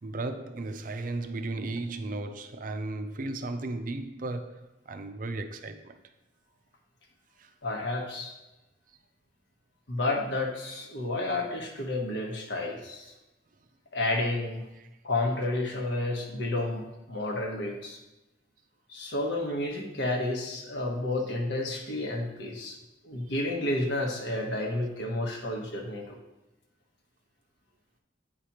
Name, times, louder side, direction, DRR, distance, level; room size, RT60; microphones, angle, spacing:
voice 1, 0.0-6.0 7.4-7.5 15.3-15.5 21.2-21.3 23.3-23.5, right 2 dB, 45° right, 0.4 m, -35 dB
voice 2, 7.6-8.3 9.9-13.1 13.9-14.6 15.0-18.0 18.9-22.8 23.0-26.2, left 2 dB, 70° left, 1.2 m, -31 dB
8.7 x 4.9 x 3.0 m
head